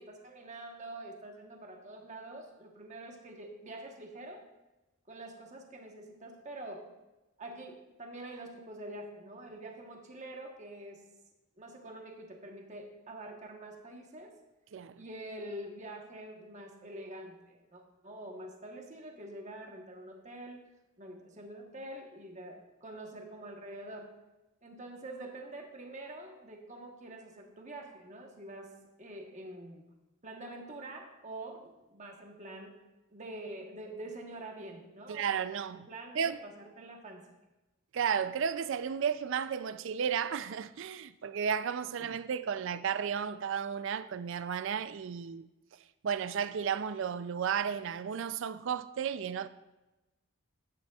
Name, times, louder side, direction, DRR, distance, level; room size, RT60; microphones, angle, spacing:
voice 1, 0.0-4.4 5.1-6.9 7.4-11.0 11.6-14.4 15.0-20.6 21.0-24.1 24.6-29.9 30.2-32.7 33.1-37.3, right 1 dB, 35° right, 1.1 m, -46 dB
voice 2, 14.7-15.0 35.1-35.9 36.1-36.4 37.9-45.5 46.0-49.5, right 7 dB, 60° right, 0.4 m, -33 dB
12.5 x 9.0 x 2.4 m
head